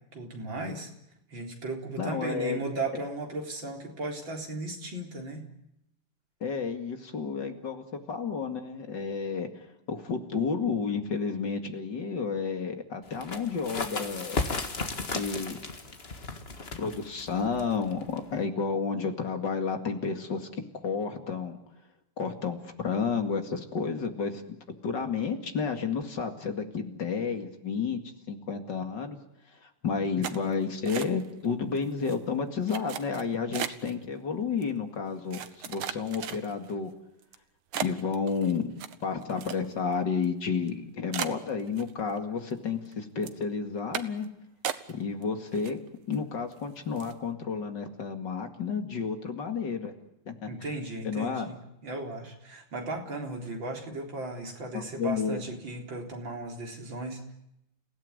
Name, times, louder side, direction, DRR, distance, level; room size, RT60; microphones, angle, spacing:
voice 1, 0.1-0.9 1.3-5.5 50.5-57.3, right 2 dB, 60° right, 2 dB, 4.6 m, -36 dB
voice 2, 2.0-2.6 6.4-14.4 15.1-15.6 16.8-20.5 20.8-21.6 22.2-24.6 24.8-28.0 28.3-29.2 29.8-35.4 35.7-36.9 37.8-38.7 39.0-44.3 44.9-45.8 46.1-49.9 50.3-50.5 51.0-51.5 54.7-55.4, left 5 dB, 55° left, 6 dB, 2.8 m, -31 dB
sound 1, 13.1-18.4, left 3 dB, 30° left, 1.9 m, -35 dB
sound 2, 30.2-31.5 31.8-32.2 32.7-33.9 34.6-34.7 35.3-36.7 37.2-37.4 37.7-39.9 40.2-40.3 40.7-40.8 41.1-42.2 42.5-42.9 43.2-43.4 43.9-44.3 44.6-45.2 45.5-46.2 46.5-46.6 47.0-47.2, right 9 dB, 80° right, 2.0 m, -36 dB
30.0 x 17.0 x 9.7 m, 0.82 s
omnidirectional pair, 2.4 m